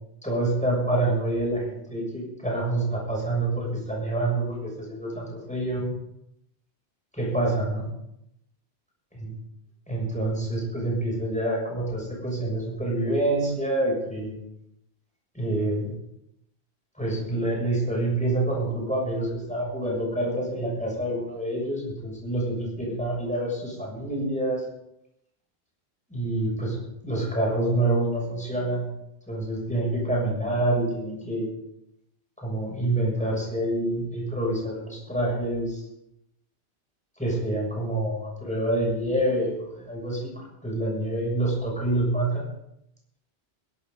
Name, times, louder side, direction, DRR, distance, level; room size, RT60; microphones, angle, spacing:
voice 1, 0.2-5.9 7.2-7.9 9.2-9.3 9.9-14.3 15.3-15.9 17.0-24.6 26.1-26.8 27.0-28.9 29.3-31.5 32.4-35.8 37.2-42.4, right 1 dB, 5° left, -3 dB, 6.7 m, -27 dB
22.0 x 13.0 x 3.9 m, 0.81 s
omnidirectional pair, 1.1 m